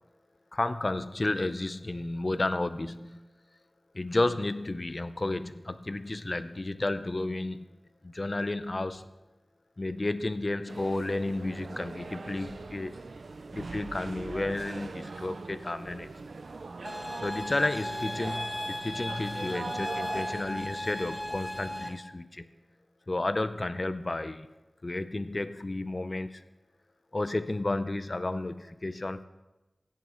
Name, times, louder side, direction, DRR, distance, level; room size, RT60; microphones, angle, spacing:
voice 1, 0.5-3.3 3.9-7.7 8.0-9.1 9.8-12.9 13.5-16.1 17.2-22.4 23.1-24.5 24.8-26.4 27.1-29.2, left 2 dB, 35° left, 11 dB, 0.5 m, -32 dB
sound 1, 10.7-22.0, right 3 dB, 70° right, 0.4 m, -42 dB
sound 2, 16.8-21.9, left 1 dB, 20° left, 0.9 m, -36 dB
16.5 x 6.0 x 4.4 m, 1.0 s
wide cardioid pair, 85°, 0 cm